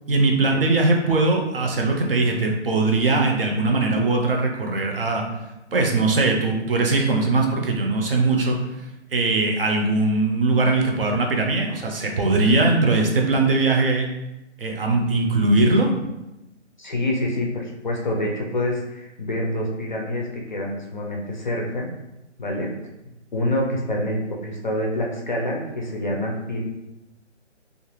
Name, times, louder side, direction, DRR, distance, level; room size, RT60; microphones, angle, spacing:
voice 1, 0.1-5.2 5.7-8.6 9.1-14.1 14.6-15.9, right 3 dB, 50° right, 1 dB, 0.6 m, -20 dB
voice 2, 16.8-21.9 22.4-22.7 23.3-24.2 24.4-26.6, left 1 dB, 40° left, -1 dB, 0.4 m, -26 dB
2.4 x 2.4 x 3.0 m, 0.95 s
hypercardioid pair, 160°, 36 cm